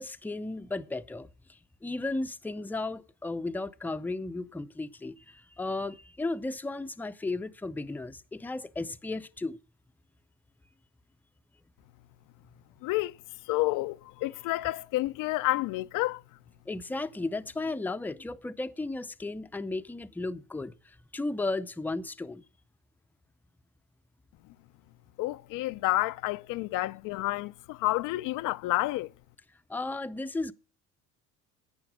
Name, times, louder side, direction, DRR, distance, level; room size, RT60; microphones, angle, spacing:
voice 1, 0.0-9.6 16.7-22.4 29.7-30.5, left 2 dB, 5° left, 0.6 m, -35 dB
voice 2, 12.8-13.2 13.5-16.2 25.2-29.1, left 19 dB, 65° left, 0.5 m, -29 dB
11.5 x 8.7 x 6.1 m
supercardioid pair, 90°, 34 cm